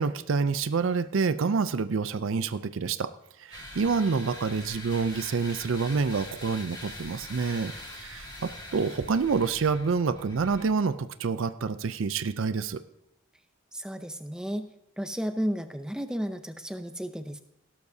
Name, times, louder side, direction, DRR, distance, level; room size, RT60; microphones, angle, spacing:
voice 1, 0.0-3.1 3.4-12.8, right 5 dB, 60° right, 13 dB, 0.4 m, -27 dB
sound 1, 3.5-10.6, left 1 dB, 20° left, 1.8 m, -43 dB
voice 2, 13.7-14.7 15.0-17.4, equal, 5° right, 8 dB, 0.5 m, -33 dB
17.0 x 12.0 x 2.7 m, 0.83 s
head